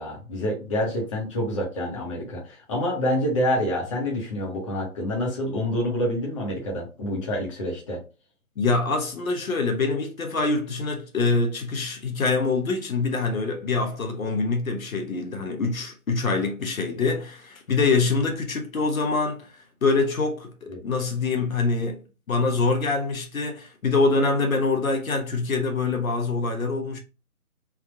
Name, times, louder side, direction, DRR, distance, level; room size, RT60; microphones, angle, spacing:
voice 1, 0.0-8.0 20.7-20.8, left 1 dB, 20° left, 0.8 m, -27 dB
voice 2, 8.6-19.5 19.8-22.0 22.3-27.0, left 3 dB, 70° left, 1.0 m, -25 dB
3.5 x 2.4 x 3.5 m
figure-of-eight pair, 155°, 43 cm